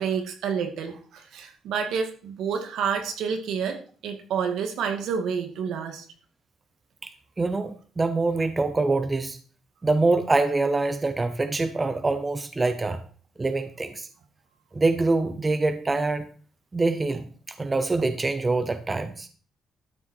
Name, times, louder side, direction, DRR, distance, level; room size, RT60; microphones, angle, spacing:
voice 1, 0.0-6.1, right 6 dB, 80° right, 5 dB, 2.3 m, -29 dB
voice 2, 7.4-9.4 9.8-13.0 13.4-14.1 14.7-16.3 16.7-19.3, right 3 dB, 15° right, 10 dB, 0.8 m, -25 dB
12.5 x 7.2 x 4.6 m, 0.41 s
cardioid pair, 155°, 0 cm